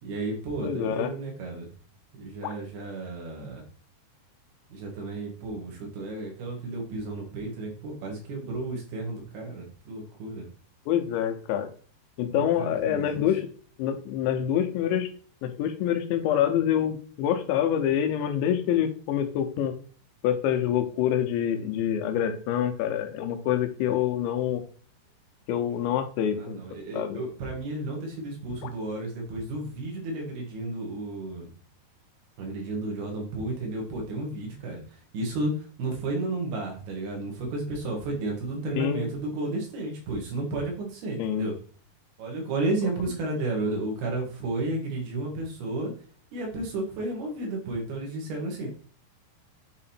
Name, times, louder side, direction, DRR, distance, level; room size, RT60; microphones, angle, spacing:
voice 1, 0.0-1.7 2.2-3.6 4.7-10.4 12.3-13.3 26.4-31.5 32.4-34.8 35.1-41.5 42.2-45.9 46.3-48.7, right 2 dB, 65° right, 1 dB, 3.5 m, -32 dB
voice 2, 0.6-1.1 10.9-11.7 12.2-13.5 13.8-15.1 15.4-19.8 20.2-24.6 25.5-26.6 26.9-27.2 28.6-28.7 38.8-39.1 41.2-41.5 43.6-43.8, left 10 dB, 90° left, 8 dB, 3.2 m, -26 dB
8.2 x 3.8 x 4.4 m, 0.43 s
omnidirectional pair, 5.1 m